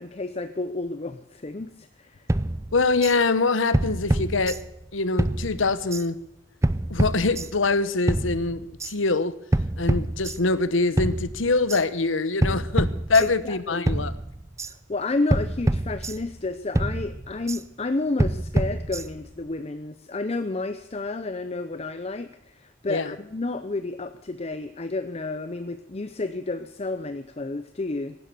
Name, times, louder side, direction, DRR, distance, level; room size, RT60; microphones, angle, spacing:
voice 1, 0.0-2.3 13.2-13.9 14.6-28.2, left 3 dB, 35° left, 10 dB, 0.6 m, -31 dB
sound 1, 2.3-3.2 3.7-4.9 5.2-6.1 6.6-7.7 8.1-8.9 9.5-10.7 11.0-11.8 12.4-13.6 13.9-14.7 15.3-16.5 16.8-17.6 18.2-19.4, right 1 dB, 15° right, 0.5 m, -26 dB
voice 2, 2.7-4.6 4.9-6.2 6.9-9.4 9.8-14.1 22.9-23.1, left 3 dB, 90° left, 15 dB, 1.0 m, -24 dB
16.5 x 11.0 x 6.8 m, 0.84 s
head